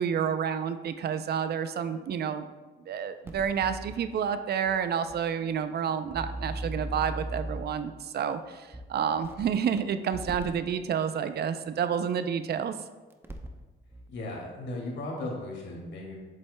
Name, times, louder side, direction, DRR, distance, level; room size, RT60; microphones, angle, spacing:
voice 1, 0.0-2.5 2.9-12.7, right 7 dB, 55° right, 10 dB, 0.5 m, -29 dB
sound 1, 3.3-4.0 4.7-4.8 5.1-5.2 6.1-7.8 8.7-8.8 9.2-9.8 10.1-10.5 12.0-12.1 13.1-13.6 13.9-14.0, right 1 dB, 10° right, 0.7 m, -37 dB
voice 2, 14.1-16.2, left 2 dB, 65° left, -1 dB, 2.1 m, -36 dB
7.6 x 7.5 x 2.2 m, 1.3 s
cardioid pair, 90°, 20 cm